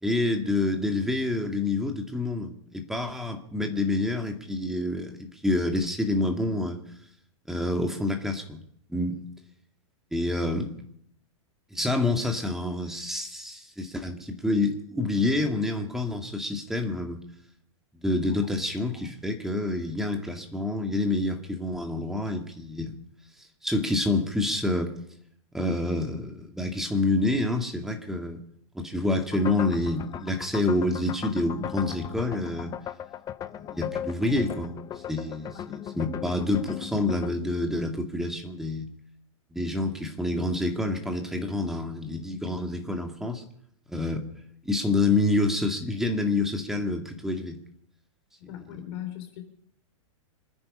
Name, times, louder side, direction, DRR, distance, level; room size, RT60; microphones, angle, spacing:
voice 1, 0.0-6.8 7.5-8.6 8.9-9.2 10.1-10.7 11.7-17.2 17.9-23.0 23.6-24.9 25.5-28.4 28.7-32.7 33.7-34.8 35.1-38.9 39.5-43.4 43.9-44.3 44.6-47.6, left 2 dB, ahead, 3 dB, 2.3 m, -27 dB
sound 1, 29.3-37.3, left 10 dB, 20° left, 0.7 m, -37 dB
voice 2, 48.4-49.4, left 11 dB, 50° left, 6 dB, 3.9 m, -38 dB
26.0 x 9.8 x 5.6 m, 0.70 s
hypercardioid pair, 135°, 17 cm